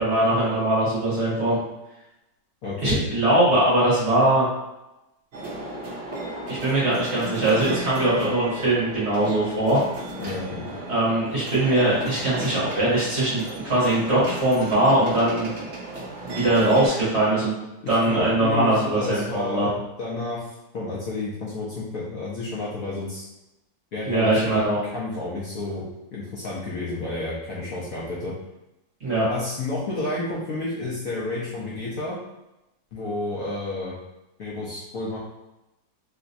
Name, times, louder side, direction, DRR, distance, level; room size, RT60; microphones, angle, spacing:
voice 1, 0.0-1.6 2.8-4.5 6.5-9.8 10.9-15.5 16.2-17.5 17.9-19.7 24.0-24.8 29.0-29.2, right 1 dB, 40° right, -9 dB, 1.4 m, -21 dB
voice 2, 2.6-3.0 10.2-10.7 17.8-23.3 23.9-24.6 24.9-28.3 29.2-32.2 32.9-33.9 34.4-35.2, left 2 dB, 65° left, -7 dB, 0.9 m, -31 dB
sound 1, 5.3-16.9, right 2 dB, 55° right, 0.7 m, -35 dB
3.3 x 2.9 x 2.6 m, 0.94 s
omnidirectional pair, 2.0 m